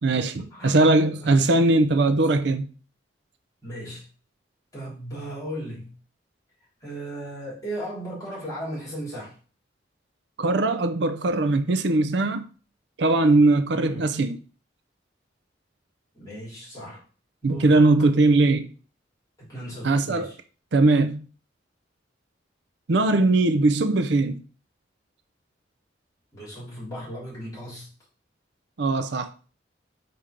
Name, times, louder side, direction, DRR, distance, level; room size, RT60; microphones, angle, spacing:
voice 1, 0.0-2.6 10.4-12.4 13.0-14.4 17.4-18.7 19.8-20.3 20.7-21.2 22.9-24.4 28.8-29.4, right 2 dB, 65° right, 0.5 m, -20 dB
voice 2, 3.6-4.1 4.7-5.9 6.8-9.4 13.7-14.1 16.1-17.0 17.4-17.8 19.4-20.3 26.3-27.9, right 1 dB, 20° left, 3.5 m, -36 dB
4.9 x 4.4 x 5.1 m
head